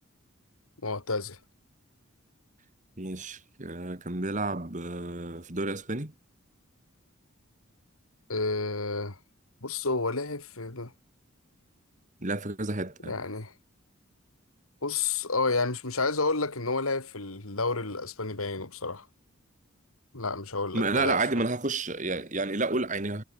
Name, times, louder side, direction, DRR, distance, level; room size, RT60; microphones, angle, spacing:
voice 1, 0.8-1.4 8.3-9.2 9.6-10.9 13.0-13.5 14.8-19.1 20.1-21.2, left 3 dB, 80° left, 2.9 m, -30 dB
voice 2, 3.0-6.1 12.2-13.2 20.7-23.2, right 3 dB, 35° right, 2.0 m, -30 dB
head